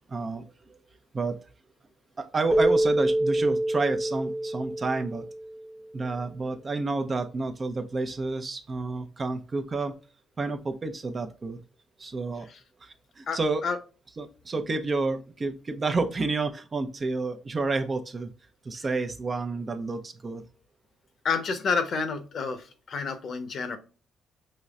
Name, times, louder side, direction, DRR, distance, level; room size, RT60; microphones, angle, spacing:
voice 1, 0.1-0.8 1.1-1.4 2.2-5.3 5.9-10.0 10.4-11.6 12.0-12.5 12.8-13.6 14.2-18.3 18.6-20.4, right 3 dB, 35° right, 7 dB, 0.7 m, -30 dB
Keyboard (musical), 2.5-5.7, right 1 dB, 10° right, 0.9 m, -26 dB
voice 2, 13.3-13.8 18.8-18.9 21.2-23.8, left 5 dB, 60° left, 8 dB, 0.8 m, -29 dB
5.3 x 3.1 x 2.4 m, 0.35 s
cardioid pair, 90°, 0 cm